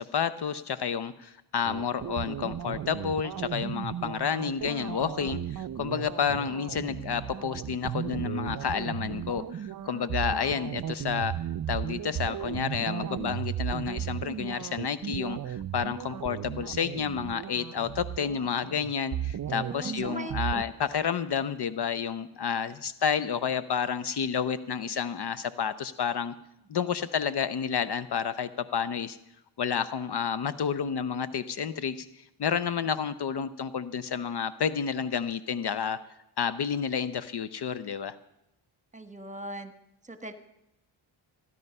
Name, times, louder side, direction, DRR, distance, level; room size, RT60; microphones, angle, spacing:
voice 1, 0.0-11.3 11.7-26.3 26.7-29.2 29.6-32.1 32.4-36.0 36.4-38.2, left 7 dB, 55° left, 14 dB, 0.7 m, -30 dB
sound 1, 1.6-20.6, right 10 dB, 45° right, 0.5 m, -35 dB
voice 2, 19.5-20.4 38.9-39.7 40.0-40.3, right 2 dB, 15° right, 9 dB, 1.4 m, -39 dB
15.5 x 11.0 x 5.5 m, 0.87 s
cardioid pair, 65°, 49 cm